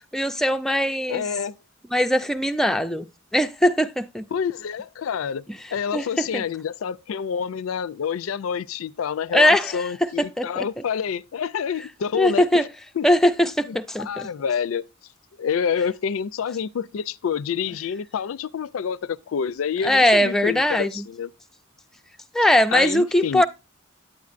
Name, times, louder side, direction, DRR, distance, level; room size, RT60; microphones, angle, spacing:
voice 1, 0.1-1.2 1.9-3.1 3.3-4.2 5.9-6.4 9.3-10.7 12.1-12.7 13.0-14.3 19.8-21.0 22.3-23.5, left 1 dB, ahead, 0.3 m, -20 dB
voice 2, 1.1-1.6 4.3-5.4 5.7-12.7 13.0-13.1 13.7-14.8 15.4-21.3 22.7-23.4, left 7 dB, 90° left, 0.4 m, -28 dB
9.4 x 8.6 x 2.5 m
head